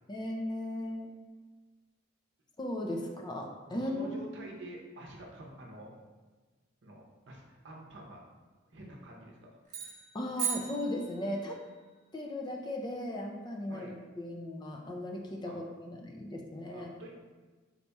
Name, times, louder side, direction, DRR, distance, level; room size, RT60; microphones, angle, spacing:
voice 1, 0.1-1.1 2.6-4.2 10.1-11.6 12.1-16.9, left 1 dB, 20° left, 1 dB, 0.4 m, -37 dB
voice 2, 3.7-5.9 6.8-8.2 8.7-9.6 13.7-13.9 15.5-15.6 16.7-17.1, right 1 dB, 65° right, -1 dB, 0.7 m, -48 dB
sound 1, 9.6-11.6, right 7 dB, 40° right, 1.2 m, -37 dB
4.1 x 4.1 x 2.3 m, 1.3 s
head